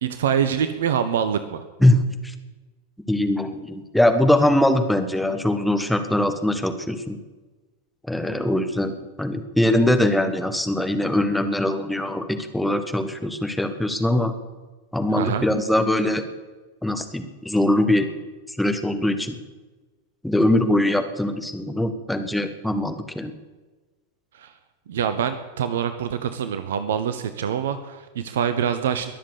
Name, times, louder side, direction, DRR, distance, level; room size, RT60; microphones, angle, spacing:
voice 1, 0.0-1.6 15.1-15.5 24.3-24.5 24.9-29.1, right 8 dB, 60° right, 11 dB, 0.9 m, -25 dB
voice 2, 1.8-2.3 3.1-7.2 8.1-14.3 14.9-16.2 16.8-18.1 18.5-19.4 20.2-23.3, left 1 dB, 5° left, 7 dB, 1.5 m, -22 dB
22.0 x 7.5 x 8.2 m, 1.2 s
figure-of-eight pair, 90°, 0 cm